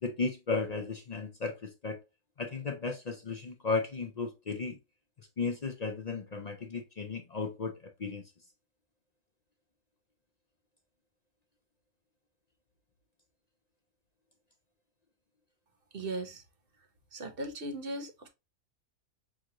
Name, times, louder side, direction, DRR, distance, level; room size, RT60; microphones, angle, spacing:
voice 1, 0.0-2.0 2.4-4.8 5.2-8.2, left 4 dB, 50° left, 0.5 m, -35 dB
voice 2, 15.9-16.4 17.1-18.3, right 2 dB, 45° right, 1.0 m, -38 dB
6.1 x 2.5 x 2.9 m
omnidirectional pair, 1.5 m